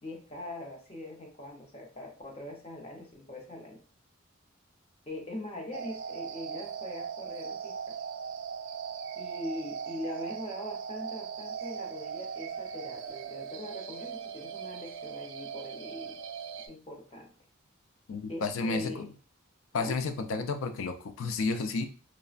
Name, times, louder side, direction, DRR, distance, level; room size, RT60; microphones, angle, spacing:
voice 1, 0.0-3.8 5.1-8.0 9.2-16.2 16.7-17.3 18.3-19.1 19.7-20.0, left 1 dB, 30° left, 0 dB, 0.6 m, -42 dB
sound 1, 5.7-16.7, right 7 dB, 65° right, 0.3 m, -39 dB
voice 2, 18.1-19.1 19.7-21.8, left 4 dB, 75° left, 7 dB, 0.4 m, -31 dB
3.1 x 2.1 x 2.4 m, 0.38 s
head